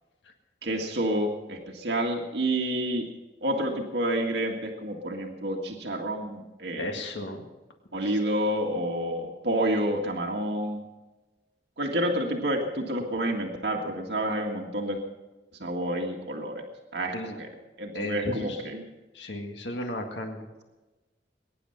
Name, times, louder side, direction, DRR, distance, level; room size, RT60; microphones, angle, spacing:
voice 1, 0.6-3.1 3.4-6.9 7.9-10.8 11.8-15.0 15.6-16.6 16.9-17.5 17.8-18.8, right 1 dB, 75° right, 1 dB, 1.9 m, -29 dB
voice 2, 6.8-7.5 8.0-8.2 17.1-17.4 17.9-18.7 19.1-20.6, left 1 dB, 85° left, 3 dB, 2.0 m, -35 dB
22.5 x 10.5 x 5.8 m, 1.2 s
head